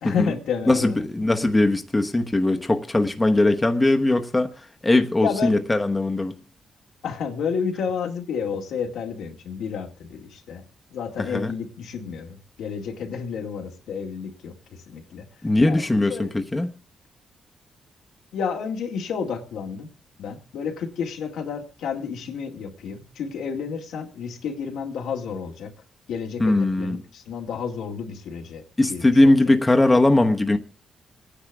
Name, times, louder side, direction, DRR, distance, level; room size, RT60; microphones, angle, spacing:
voice 1, 0.0-1.1 5.2-5.6 7.0-10.6 10.9-15.3 15.6-16.3 18.3-19.9 20.2-25.7 26.1-29.5, left 6 dB, 90° left, 2.2 m, -31 dB
voice 2, 0.7-4.5 4.8-6.4 11.2-11.5 15.4-16.7 26.4-27.0 28.8-30.6, left 2 dB, 20° left, 1.1 m, -20 dB
27.0 x 10.0 x 3.5 m
cardioid pair, 75°, 0 cm